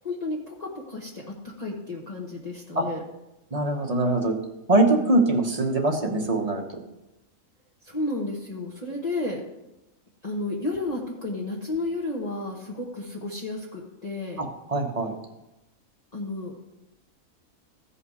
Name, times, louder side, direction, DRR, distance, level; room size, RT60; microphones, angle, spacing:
voice 1, 0.0-3.0 7.8-9.4 10.2-14.4 16.1-16.5, left 2 dB, 30° left, -4 dB, 1.3 m, -32 dB
voice 2, 3.5-4.3 4.7-6.6 14.4-15.2, right 2 dB, 30° right, 2 dB, 1.1 m, -23 dB
15.0 x 5.7 x 4.8 m, 0.94 s
omnidirectional pair, 1.5 m